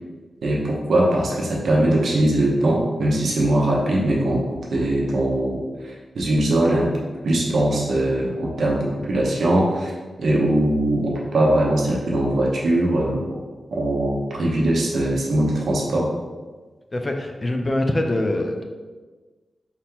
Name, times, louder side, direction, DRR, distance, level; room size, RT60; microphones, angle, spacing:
voice 1, 0.4-6.9 7.2-9.9 10.2-13.3 13.7-16.1, right 1 dB, 80° right, -2 dB, 0.9 m, -21 dB
voice 2, 16.9-18.6, left 1 dB, 30° left, 4 dB, 0.5 m, -23 dB
4.1 x 3.6 x 2.9 m, 1.3 s
cardioid pair, 75°, 0 cm